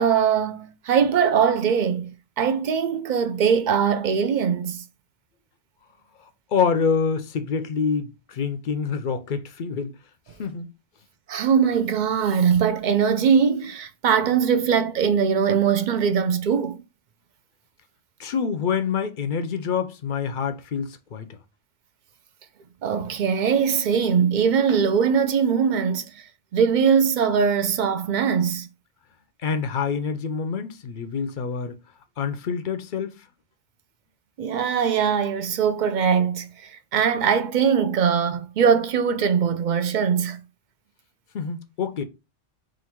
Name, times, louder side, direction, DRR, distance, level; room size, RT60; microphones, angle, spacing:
voice 1, 0.0-2.1 2.4-4.8 11.3-16.8 22.8-26.3 26.5-28.7 34.4-40.4, right 7 dB, 55° right, 0.5 m, -21 dB
voice 2, 6.5-9.9 10.4-10.7 18.2-21.4 29.4-31.8 32.2-33.1 41.3-42.0, left 6 dB, 55° left, 0.6 m, -26 dB
3.7 x 2.5 x 4.4 m
omnidirectional pair, 1.2 m